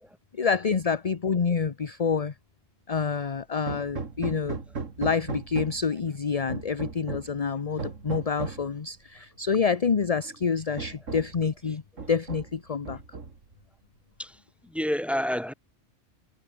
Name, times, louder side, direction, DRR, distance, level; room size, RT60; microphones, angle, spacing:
voice 1, 0.4-2.3 2.9-4.6 5.0-11.8 12.1-13.0, left 5 dB, 35° left, 0.9 m, -27 dB
Hammer, 3.7-5.9 6.5-7.4 7.8-8.7 9.7-9.8 10.2-10.4 10.8-11.4 12.0-12.6 12.9-13.5, right 4 dB, 85° right, 2.7 m, -36 dB
voice 2, 14.2-15.5, equal, ahead, 2.5 m, -29 dB
omnidirectional pair, 1.3 m